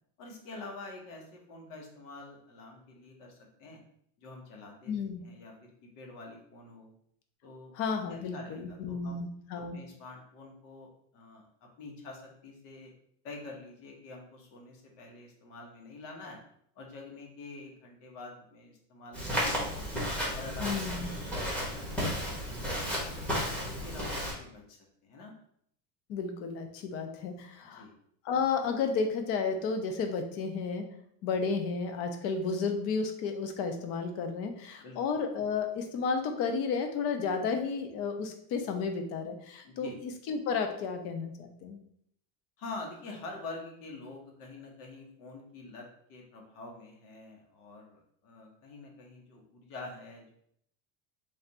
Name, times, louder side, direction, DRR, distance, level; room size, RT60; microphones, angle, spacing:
voice 1, 0.2-3.8 4.2-6.9 7.4-7.7 8.1-9.2 9.7-10.9 11.1-12.9 13.2-16.4 16.7-19.7 20.3-23.3 23.6-25.3 27.6-27.9 34.8-35.0 39.6-40.0 42.6-50.3, left 3 dB, 85° left, 0 dB, 1.2 m, -46 dB
voice 2, 4.9-5.2 7.7-9.8 20.6-21.1 26.1-27.9 28.2-30.9 31.2-41.8, left 5 dB, 35° left, 5 dB, 0.4 m, -32 dB
Walk footsteps, 19.1-24.3, equal, 5° left, 0.8 m, -33 dB
3.3 x 2.5 x 4.1 m, 0.69 s
cardioid pair, 160°, 44 cm